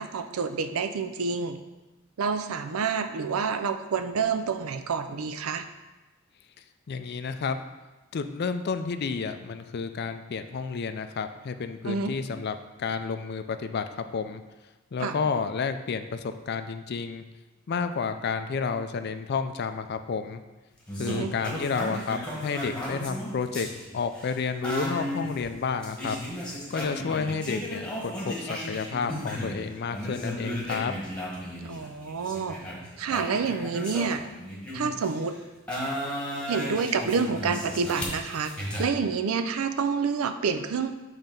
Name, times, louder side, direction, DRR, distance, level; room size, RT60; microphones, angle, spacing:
voice 1, 0.0-1.6 2.2-5.7 11.8-12.2 15.0-15.1 21.0-21.3 31.6-32.6 33.0-34.2 34.7-35.4 36.5-38.5 38.8-40.9, right 5 dB, 85° right, 9 dB, 0.5 m, -28 dB
voice 2, 6.9-7.6 8.1-13.9 14.1-14.4 14.9-17.2 17.7-20.4 21.0-26.2 26.4-30.9, left 5 dB, 50° left, 9 dB, 0.4 m, -31 dB
sound 1, 20.9-29.6 29.9-35.2 35.7-38.8, equal, 5° left, 1.3 m, -35 dB
7.3 x 3.4 x 5.3 m, 1.2 s
head